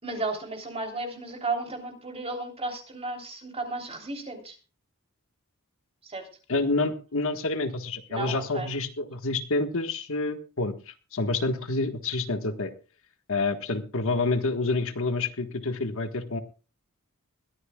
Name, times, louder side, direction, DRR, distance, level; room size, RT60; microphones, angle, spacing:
voice 1, 0.0-4.6 6.0-6.3 8.1-8.7, right 3 dB, 25° right, 3 dB, 3.4 m, -34 dB
voice 2, 6.5-12.7 13.3-16.4, left 3 dB, 65° left, 7 dB, 1.5 m, -28 dB
21.5 x 14.0 x 2.3 m, 0.35 s
head